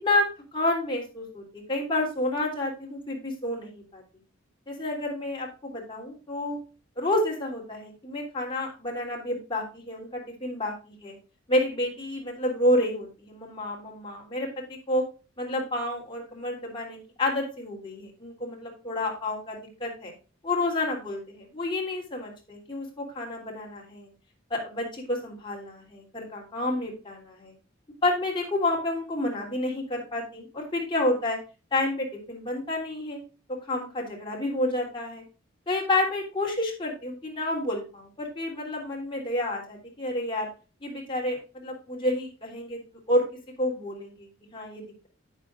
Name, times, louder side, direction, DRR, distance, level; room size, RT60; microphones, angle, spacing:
voice 1, 0.0-4.0 4.7-6.6 7.0-11.2 11.5-15.0 15.4-20.1 20.4-24.1 24.5-27.5 28.0-31.4 31.7-33.2 33.5-35.2 35.7-40.5 40.8-42.8 43.1-43.2 43.6-45.1, left 1 dB, 25° left, -1 dB, 3.2 m, -29 dB
12.0 x 8.3 x 2.5 m, 0.33 s
head